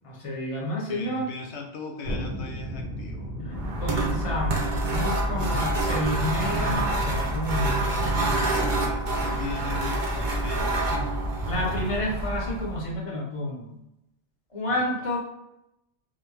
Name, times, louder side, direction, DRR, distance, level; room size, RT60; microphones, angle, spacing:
voice 1, 0.0-1.3 3.4-7.7 11.4-13.8 14.5-15.2, left 1 dB, 35° left, -2 dB, 0.6 m, -30 dB
voice 2, 0.9-3.3 5.5-6.0 7.5-11.3 14.7-15.1, left 3 dB, 85° left, 2 dB, 0.9 m, -39 dB
Thunderstorm, 2.0-12.3 12.6-12.7, equal, 80° right, 1.1 m, -38 dB
sound 1, 3.5-12.9, right 1 dB, 55° right, 0.6 m, -27 dB
2.6 x 2.1 x 3.1 m, 0.86 s
omnidirectional pair, 1.1 m